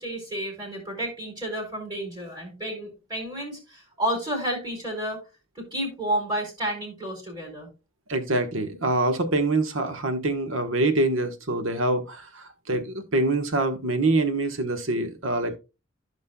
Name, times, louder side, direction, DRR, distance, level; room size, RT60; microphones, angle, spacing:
voice 1, 0.0-5.2 5.5-7.7, right 1 dB, 20° right, 4.6 m, -31 dB
voice 2, 8.1-15.6, right 2 dB, 70° right, 1.2 m, -25 dB
15.0 x 5.3 x 2.2 m
head